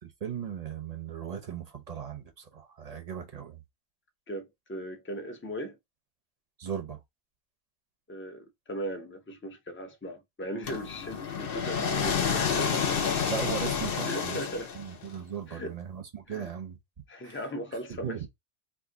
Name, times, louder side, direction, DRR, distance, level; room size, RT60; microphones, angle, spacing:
voice 1, 0.0-3.6 6.6-7.0 13.3-14.4 14.7-16.8 17.2-17.4 17.9-18.3, right 7 dB, 40° right, 0.7 m, -37 dB
voice 2, 4.3-5.8 8.1-13.1 14.0-14.7 15.5-15.7 16.3-16.5 17.1-18.2, equal, 15° left, 0.4 m, -38 dB
sound 1, 10.7-15.1, left 6 dB, 60° left, 0.8 m, -29 dB
2.6 x 2.5 x 3.6 m
omnidirectional pair, 1.2 m